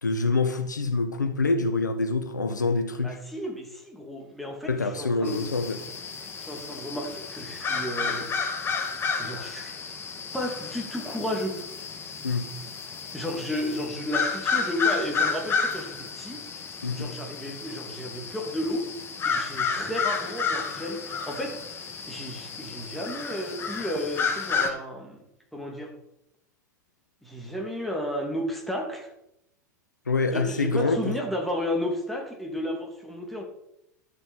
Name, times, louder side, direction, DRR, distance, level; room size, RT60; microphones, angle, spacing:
voice 1, 0.0-3.2 4.6-5.8 12.2-12.5 16.8-17.1 30.1-31.2, left 3 dB, 80° left, 1.1 m, -26 dB
voice 2, 3.0-5.4 6.4-8.3 9.2-9.7 10.3-11.7 13.1-16.4 16.9-18.9 19.2-21.6 22.1-25.2 25.5-25.9 27.2-29.1 30.3-33.4, left 1 dB, ahead, 2.6 m, -33 dB
sound 1, 5.2-24.7, left 5 dB, 25° left, 2.0 m, -31 dB
12.5 x 6.6 x 5.5 m
figure-of-eight pair, 90°, 10 cm